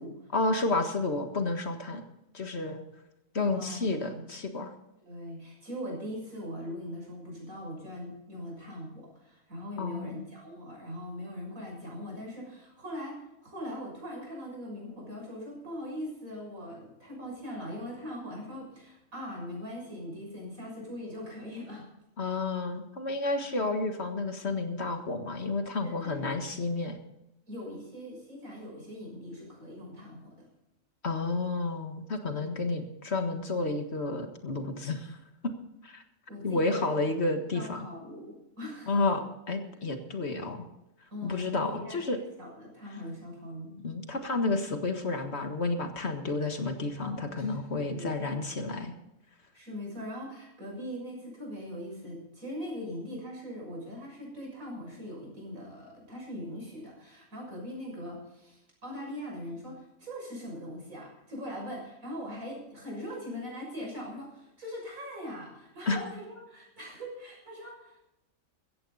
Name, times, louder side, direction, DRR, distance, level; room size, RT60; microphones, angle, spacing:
voice 1, 0.3-2.1 2.3-2.8 3.3-4.7 9.8-10.2 22.2-27.0 31.0-35.2 35.4-35.5 35.8-36.0 36.4-37.9 38.9-40.6 41.2-42.2 43.8-48.9 65.9-66.0, left 3 dB, 55° left, 6 dB, 1.9 m, -31 dB
voice 2, 5.0-21.9 22.2-22.4 23.4-23.6 25.8-26.3 27.5-30.5 32.3-32.5 36.3-36.9 37.5-39.0 41.1-43.7 47.0-48.5 49.5-68.0, equal, 90° right, -1 dB, 7.0 m, -41 dB
16.0 x 15.0 x 4.1 m, 0.90 s
omnidirectional pair, 1.4 m